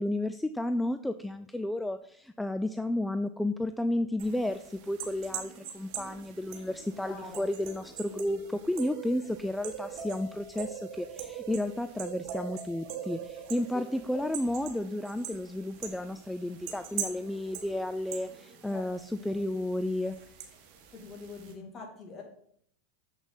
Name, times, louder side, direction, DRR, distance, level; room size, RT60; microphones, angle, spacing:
voice 1, 0.0-20.2, left 1 dB, 5° left, 10 dB, 0.3 m, -32 dB
sound 1, 4.2-21.5, right 7 dB, 55° right, 1.4 m, -43 dB
voice 2, 7.0-7.5 8.0-8.3 13.7-13.8 14.1-14.2 18.7-18.8 19.2-19.4 20.9-22.2, left 4 dB, 30° left, 1 dB, 2.5 m, -44 dB
7.0 x 6.0 x 4.0 m, 0.65 s
hypercardioid pair, 105°, 0 cm